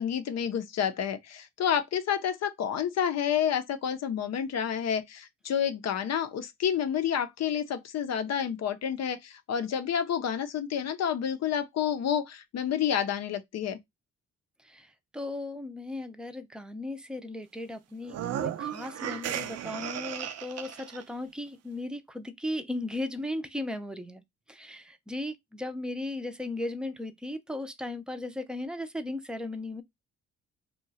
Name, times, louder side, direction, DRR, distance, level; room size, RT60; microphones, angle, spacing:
voice 1, 0.0-13.8, left 8 dB, 60° left, 0.6 m, -29 dB
voice 2, 15.1-24.2 24.5-29.8, left 1 dB, 5° right, 0.6 m, -36 dB
sound 1, 18.0-21.0, right 10 dB, 60° right, 0.5 m, -35 dB
2.7 x 2.3 x 4.0 m
supercardioid pair, 65°, 29 cm